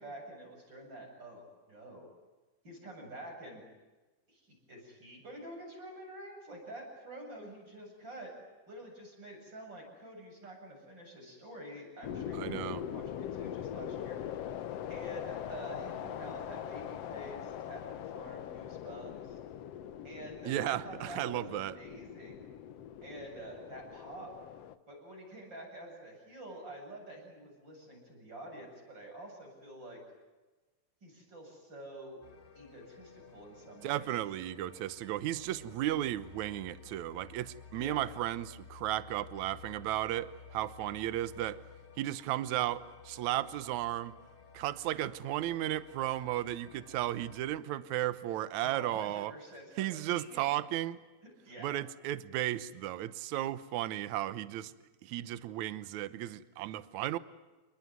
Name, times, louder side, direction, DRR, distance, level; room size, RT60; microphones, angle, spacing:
voice 1, 0.0-2.1 2.6-3.6 4.3-8.3 8.7-14.2 14.9-19.4 20.0-22.5 23.0-24.3 24.9-30.0 31.0-32.2 32.5-34.2 37.7-38.1 48.6-50.6 51.4-51.8, right 1 dB, 25° right, 1 dB, 8.3 m, -48 dB
sound 1, 12.0-24.8, left 10 dB, 90° left, 1.3 m, -42 dB
voice 2, 12.3-12.8 20.5-21.8 33.8-41.6 42.0-44.1 44.5-49.3 49.8-51.0 51.6-54.7 55.0-57.2, right 14 dB, 70° right, 16 dB, 1.8 m, -34 dB
sound 2, 32.2-47.6, left 6 dB, 60° left, 0.6 m, -54 dB
29.0 x 20.5 x 9.5 m, 1.2 s
omnidirectional pair, 4.4 m